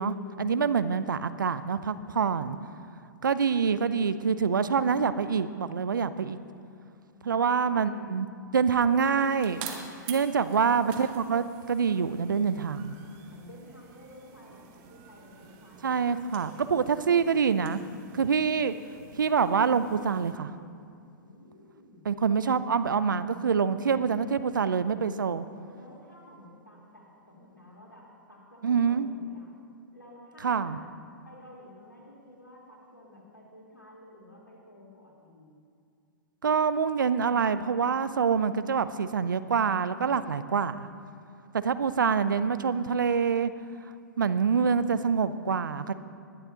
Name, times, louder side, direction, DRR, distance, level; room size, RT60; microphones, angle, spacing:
voice 1, 0.0-2.6 3.2-6.4 7.2-8.3 8.5-9.7 10.1-12.9 15.8-17.8 18.1-18.7 19.1-20.5 22.1-25.5 28.6-29.1 30.4-30.8 36.4-40.9 41.5-43.5 44.2-45.9, right 6 dB, 75° right, 13 dB, 0.6 m, -26 dB
voice 2, 7.1-8.1 10.4-11.0 13.0-17.2 21.2-22.1 25.7-29.5 29.9-30.9 31.2-35.6, left 1 dB, 90° left, -5 dB, 3.8 m, -52 dB
sound 1, 8.7-20.3, right 7 dB, 40° right, 1.4 m, -48 dB
20.5 x 11.0 x 2.9 m, 2.4 s
figure-of-eight pair, 110°, 11 cm